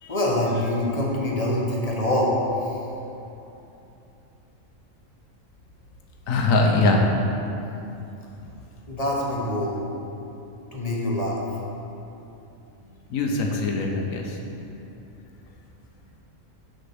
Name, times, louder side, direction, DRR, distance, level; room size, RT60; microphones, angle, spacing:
voice 1, 0.1-2.4 2.6-2.8 8.9-9.8 10.7-11.4, left 1 dB, 30° left, -3 dB, 0.9 m, -25 dB
voice 2, 6.3-7.1 13.1-14.4, left 2 dB, 85° left, 2 dB, 1.2 m, -22 dB
6.6 x 4.4 x 5.8 m, 2.9 s
omnidirectional pair, 1.4 m